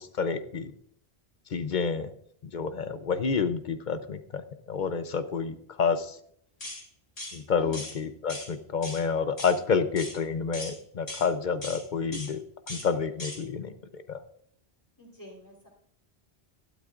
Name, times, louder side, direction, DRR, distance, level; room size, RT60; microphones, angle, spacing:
voice 1, 0.2-0.7 1.5-2.1 2.5-6.2 7.3-12.4 12.7-14.2, left 5 dB, 50° left, 10 dB, 0.7 m, -29 dB
sound 1, 6.6-6.8 7.2-7.4 7.7-7.9 8.3-8.5 8.8-9.0 9.4-9.6 10.0-10.2 10.5-10.7 11.1-11.3 11.6-11.8 12.1-12.3 12.7-12.9 13.2-13.4, left 1 dB, 75° left, 4.2 m, -38 dB
voice 2, 15.0-15.7, equal, 20° left, -9 dB, 3.4 m, -47 dB
12.5 x 12.0 x 2.5 m, 0.67 s
omnidirectional pair, 1.1 m